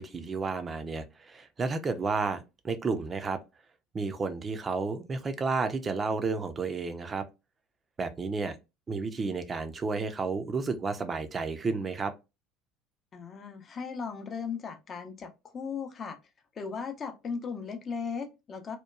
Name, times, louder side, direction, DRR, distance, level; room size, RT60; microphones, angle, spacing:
voice 1, 0.0-3.4 3.9-7.3 8.0-8.6 8.9-12.1, right 4 dB, 30° right, 0.5 m, -31 dB
voice 2, 13.1-16.2 16.6-18.8, left 5 dB, 40° left, 0.6 m, -37 dB
2.9 x 2.1 x 2.3 m
hypercardioid pair, 65°, 0 cm